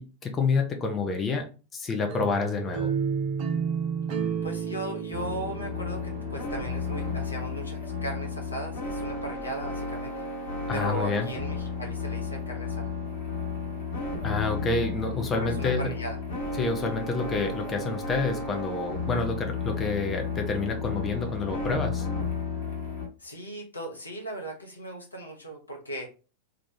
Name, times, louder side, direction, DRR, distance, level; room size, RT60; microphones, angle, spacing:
voice 1, 0.0-1.5 1.7-2.9 10.7-11.3 14.2-15.9 16.5-22.1, left 4 dB, 20° left, 3 dB, 0.6 m, -28 dB
sound 1, 2.1-7.0, right 6 dB, 40° right, 0.6 m, -31 dB
voice 2, 4.4-10.3 10.7-12.9 15.3-16.2 23.2-26.1, right 1 dB, 80° left, 1 dB, 0.9 m, -37 dB
sound 2, 5.1-23.1, left 4 dB, 60° left, 1.2 m, -33 dB
2.9 x 2.4 x 3.7 m, 0.34 s
figure-of-eight pair, 90°, 0 cm